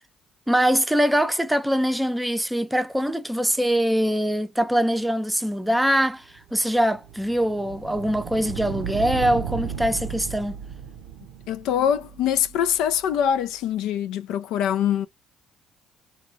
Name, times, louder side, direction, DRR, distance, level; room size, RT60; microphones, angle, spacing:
voice 1, 0.5-10.6, equal, 5° right, 0.6 m, -23 dB
sound 1, 6.4-13.2, right 8 dB, 75° right, 0.5 m, -35 dB
voice 2, 11.5-15.1, left 9 dB, 75° left, 0.4 m, -23 dB
3.1 x 2.3 x 2.6 m
supercardioid pair, 75°, 0 cm